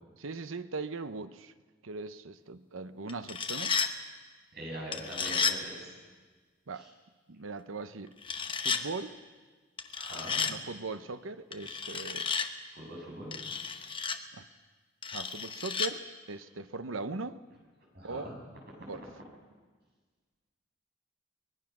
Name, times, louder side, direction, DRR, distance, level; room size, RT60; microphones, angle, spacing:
voice 1, 0.2-1.5 1.8-3.9 6.7-6.9 7.3-8.1 8.6-9.2 10.5-12.3 14.3-14.4 15.1-17.4 18.0-18.3 18.8-19.0, right 3 dB, 90° right, 12 dB, 0.9 m, -39 dB
sound 1, 3.1-3.9 4.9-5.6 8.2-8.8 9.8-10.5 11.5-12.5 13.3-14.2 15.0-15.9, left 5 dB, 25° left, 1.1 m, -32 dB
voice 2, 4.5-5.9 6.7-6.9 9.9-10.5 12.7-13.4 17.9-18.4, equal, 55° right, -2 dB, 7.9 m, -42 dB
24.0 x 20.0 x 6.1 m, 1.4 s
head